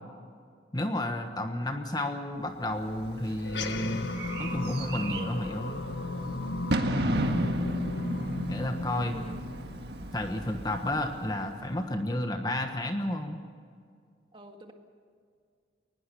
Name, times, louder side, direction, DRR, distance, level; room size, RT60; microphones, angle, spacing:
voice 1, 0.7-4.1 4.4-5.8 8.5-9.2 10.1-13.4, left 1 dB, 20° left, 5 dB, 1.3 m, -31 dB
Bird / Fireworks, 2.7-11.9, right 1 dB, 60° right, 1.7 m, -35 dB
sound 1, 3.4-10.1, left 2 dB, 70° left, 1.4 m, -34 dB
voice 2, 9.0-9.4 14.3-14.7, right 2 dB, 25° right, 4 dB, 1.9 m, -44 dB
22.5 x 20.0 x 6.9 m, 2.2 s
head